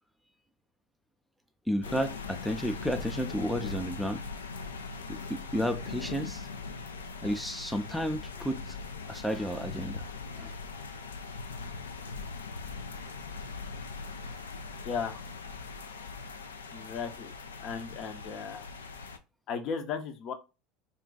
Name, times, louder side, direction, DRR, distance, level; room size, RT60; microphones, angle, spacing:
voice 1, 1.7-4.2 5.1-6.5 7.2-8.8 9.1-10.0 10.4-10.5, equal, ahead, 0.4 m, -32 dB
sound 1, 1.8-19.2, left 4 dB, 85° left, 0.3 m, -40 dB
voice 2, 14.8-15.2 16.7-17.3 17.6-18.6 19.5-20.3, left 6 dB, 50° left, 0.7 m, -35 dB
2.5 x 2.2 x 3.8 m
hypercardioid pair, 75°, 0 cm